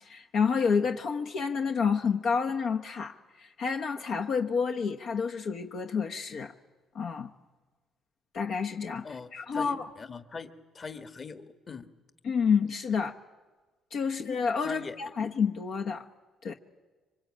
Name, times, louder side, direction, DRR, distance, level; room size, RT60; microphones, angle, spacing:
voice 1, 0.0-6.5 6.9-7.3 8.3-9.1 9.3-9.9 12.2-13.2 13.9-16.0 16.4-16.5, left 6 dB, 65° left, 1.2 m, -29 dB
voice 2, 9.0-11.9 14.6-15.0, left 4 dB, 35° left, 1.6 m, -41 dB
26.5 x 24.5 x 8.7 m
cardioid pair, 105°, 0 cm